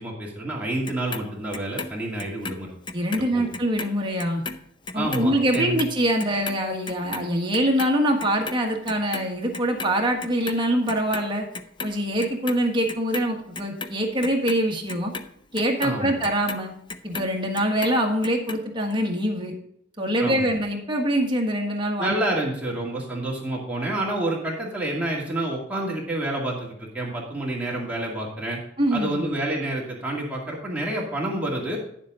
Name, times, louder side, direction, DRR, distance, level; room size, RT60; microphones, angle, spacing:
voice 1, 0.0-2.7 3.3-3.4 4.9-5.8 15.8-16.1 20.2-20.5 22.0-28.6 28.9-31.8, right 1 dB, 5° right, -4 dB, 2.3 m, -28 dB
Clock, 0.9-3.3 3.5-9.9 10.2-11.3 11.5-12.6 12.9-17.3 17.6-18.6 18.9-19.0, left 4 dB, 25° left, 0.5 m, -35 dB
voice 2, 2.9-4.4 4.9-11.4 11.8-15.1 15.5-16.7 17.0-19.5 20.0-22.1 28.8-29.3, equal, 25° right, 1 dB, 1.5 m, -24 dB
10.0 x 7.4 x 3.8 m, 0.71 s
head